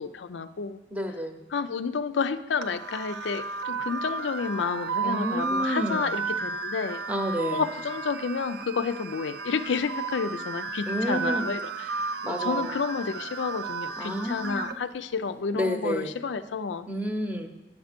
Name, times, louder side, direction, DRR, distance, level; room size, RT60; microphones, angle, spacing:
voice 1, 0.0-0.8 1.5-7.0 7.5-12.1 12.4-16.9, left 5 dB, 90° left, 11 dB, 0.4 m, -30 dB
voice 2, 0.9-1.4 5.0-6.1 7.1-7.6 10.9-11.5 12.2-12.7 14.0-14.7 15.5-16.1 16.9-17.5, equal, 10° right, 5 dB, 0.8 m, -30 dB
sound 1, 2.6-14.7, right 4 dB, 65° right, 0.6 m, -33 dB
9.2 x 7.2 x 5.1 m, 1.0 s
head